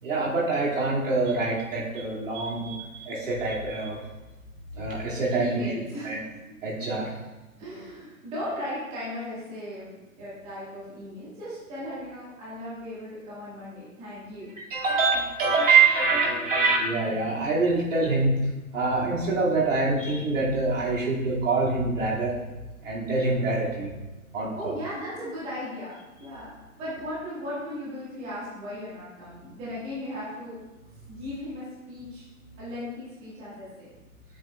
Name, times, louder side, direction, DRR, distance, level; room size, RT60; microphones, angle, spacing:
voice 1, 0.0-4.0 4.7-5.7 6.0-6.2 6.6-7.1 14.7-18.4 18.7-22.3 22.8-23.9 24.3-24.7, right 3 dB, 60° right, -5 dB, 2.2 m, -25 dB
voice 2, 5.4-6.2 6.7-6.8 7.6-9.9 10.1-14.5 24.5-26.5 26.8-30.6 31.1-32.3 32.6-33.9, left 1 dB, 15° right, -9 dB, 1.5 m, -37 dB
7.6 x 6.9 x 2.2 m, 1.1 s
hypercardioid pair, 150°, 42 cm